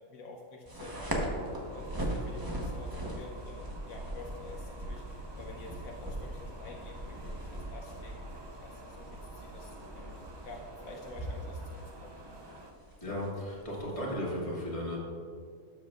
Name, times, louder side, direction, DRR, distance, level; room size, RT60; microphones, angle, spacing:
voice 1, 0.0-10.2 10.4-12.2, left 2 dB, 75° left, 0 dB, 1.2 m, -49 dB
sound 1, 0.7-14.1, right 1 dB, 15° right, 0.9 m, -40 dB
sound 2, 1.4-12.7, right 2 dB, 40° right, 0.3 m, -51 dB
voice 2, 13.0-15.0, equal, 25° left, -6 dB, 2.0 m, -35 dB
12.5 x 7.7 x 2.4 m, 2.3 s
omnidirectional pair, 1.5 m